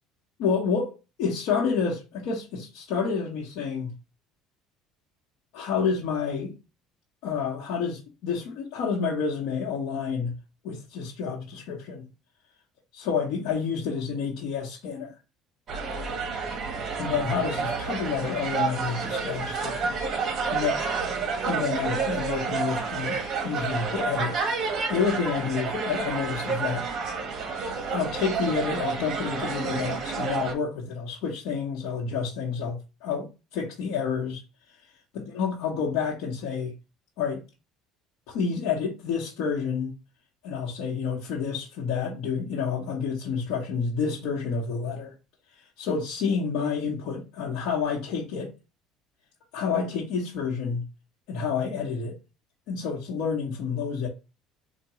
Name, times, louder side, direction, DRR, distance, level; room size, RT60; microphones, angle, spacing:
voice 1, 0.4-3.9 5.5-6.5 7.2-10.4 10.6-12.1 12.9-15.1 17.0-20.0 20.5-20.7 21.4-24.3 24.9-26.9 27.9-34.4 35.3-36.7 37.2-37.4 38.3-39.9 40.4-45.1 45.8-48.5 49.5-50.9 51.3-52.2 52.7-54.1, left 6 dB, 70° left, 1.0 m, -29 dB
sound 1, 15.7-30.5, right 5 dB, 45° right, 1.0 m, -30 dB
4.6 x 2.2 x 2.9 m
supercardioid pair, 110°, 0 cm